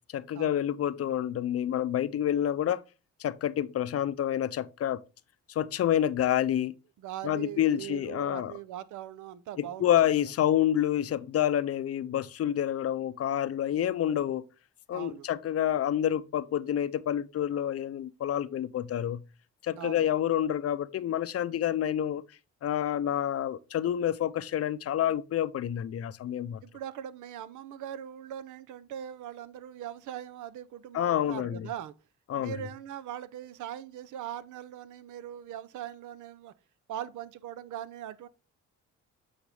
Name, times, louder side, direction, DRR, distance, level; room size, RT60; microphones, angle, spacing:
voice 1, 0.1-2.8 3.2-5.0 5.5-6.7 7.2-8.5 9.6-14.4 14.9-19.2 19.6-22.2 22.6-26.6 30.9-31.7 32.3-32.6, left 10 dB, 55° left, 0.6 m, -28 dB
voice 2, 7.0-9.9 14.9-15.3 19.8-20.1 26.6-31.9 32.3-36.5 36.9-38.3, right 11 dB, 80° right, 0.7 m, -41 dB
8.6 x 4.3 x 3.4 m
cardioid pair, 90°, 30 cm